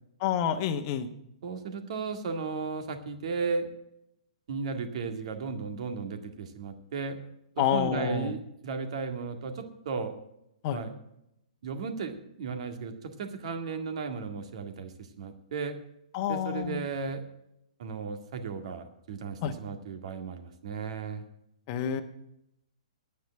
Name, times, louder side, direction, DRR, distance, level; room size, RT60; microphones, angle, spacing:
voice 1, 0.2-1.1 7.6-8.3 10.6-10.8 16.1-16.9 19.4-19.5 21.7-22.0, left 9 dB, 40° left, 6 dB, 1.1 m, -28 dB
voice 2, 1.4-3.7 4.5-7.2 7.6-10.1 10.7-10.9 11.6-15.8 16.3-17.2 17.8-21.3, right 5 dB, 55° right, 6 dB, 2.0 m, -35 dB
10.5 x 9.4 x 7.7 m, 0.80 s
hypercardioid pair, 125°, 4 cm